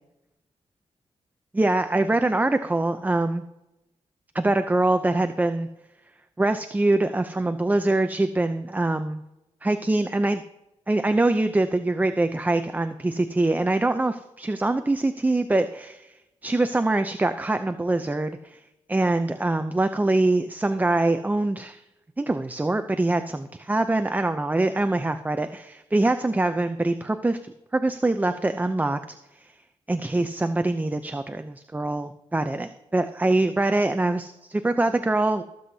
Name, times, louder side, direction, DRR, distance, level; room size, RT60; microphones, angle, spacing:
voice 1, 1.5-3.4 4.3-5.7 6.4-9.2 9.6-10.4 10.9-16.1 16.4-18.6 18.9-21.8 22.2-29.0 29.4-29.5 29.9-35.4, right 2 dB, 15° right, 8 dB, 0.5 m, -24 dB
22.0 x 7.8 x 2.8 m, 0.94 s
cardioid pair, 90°, 12 cm